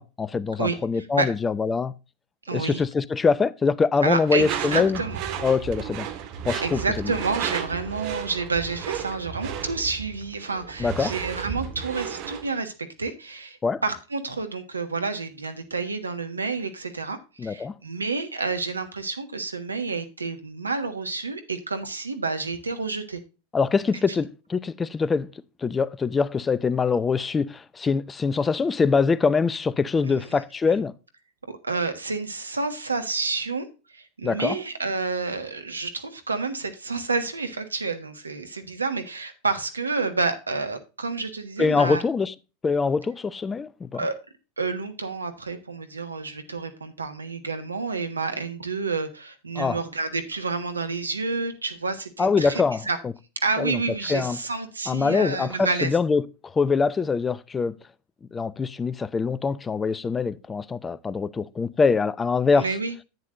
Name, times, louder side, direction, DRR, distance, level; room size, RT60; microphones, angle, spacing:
voice 1, 0.0-1.9 2.5-5.0 5.4-6.1 6.4-7.1 10.8-11.1 13.6-13.8 17.4-17.7 23.5-25.3 25.6-30.9 34.2-34.6 41.6-42.3 42.6-44.0 49.6-49.8 52.2-52.9 53.6-53.8 54.1-54.4 54.9-56.2 56.5-57.7 58.3-62.6, left 5 dB, 20° left, 0.5 m, -24 dB
voice 2, 0.6-1.3 2.4-2.8 4.0-5.2 6.6-12.7 13.0-23.2 30.0-30.4 30.7-30.8 31.6-42.0 43.9-44.1 44.6-53.0 53.4-56.0 62.5-62.9, right 4 dB, 85° right, 1.4 m, -29 dB
Door / Screech, 4.3-12.5, right 9 dB, 50° right, 1.6 m, -33 dB
10.5 x 9.5 x 2.5 m
figure-of-eight pair, 90°, 0 cm